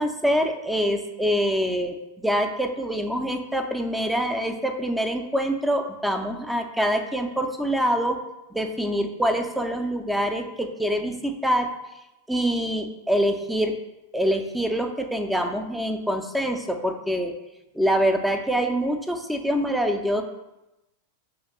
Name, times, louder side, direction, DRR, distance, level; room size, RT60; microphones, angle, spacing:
voice 1, 0.0-2.0 2.2-8.2 8.5-11.7 12.3-13.7 14.1-17.3 17.7-20.2, equal, 5° right, 6 dB, 0.4 m, -25 dB
5.5 x 2.9 x 3.1 m, 0.96 s
figure-of-eight pair, 90°, 0 cm